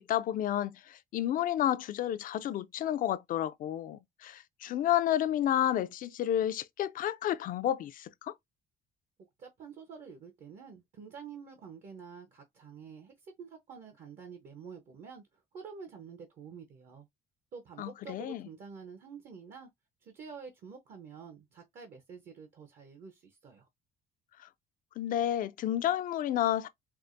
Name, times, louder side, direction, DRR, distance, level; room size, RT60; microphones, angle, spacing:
voice 1, 0.0-8.3 17.8-18.4 25.0-26.7, left 11 dB, 55° left, 0.4 m, -31 dB
voice 2, 9.2-17.1 17.5-19.7 20.0-23.7, right 6 dB, 55° right, 0.9 m, -48 dB
4.6 x 2.0 x 2.5 m
cardioid pair, 110°, 17 cm